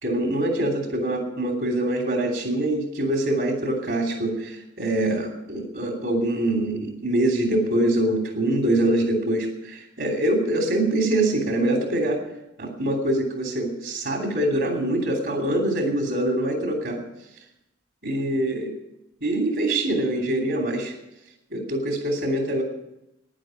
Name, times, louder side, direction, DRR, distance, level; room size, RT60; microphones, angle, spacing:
voice 1, 0.0-12.2 12.6-17.0 18.0-18.7 19.2-20.9 21.5-22.6, right 1 dB, 60° right, 2 dB, 3.0 m, -24 dB
11.0 x 10.0 x 8.9 m, 0.89 s
head